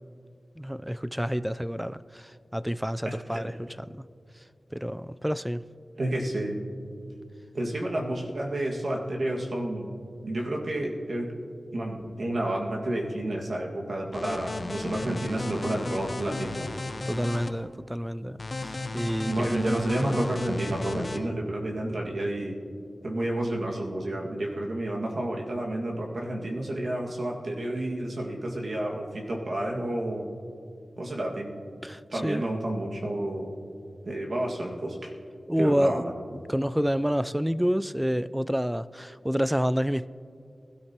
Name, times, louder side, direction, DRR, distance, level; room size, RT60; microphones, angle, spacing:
voice 1, 0.6-3.9 4.7-5.6 17.1-19.6 31.8-32.4 35.5-36.0 36.3-40.1, equal, 5° right, 0.3 m, -28 dB
voice 2, 3.0-3.5 6.0-6.6 7.5-9.9 10.2-11.3 11.7-16.7 19.3-22.6 23.0-30.3 31.0-31.5 32.1-33.5 34.0-35.1 35.6-36.1, right 1 dB, 65° right, 1.8 m, -30 dB
sound 1, 14.1-17.5 18.4-21.2, left 2 dB, 45° left, 0.8 m, -35 dB
20.0 x 13.0 x 2.9 m
wide cardioid pair, 65°, 0 cm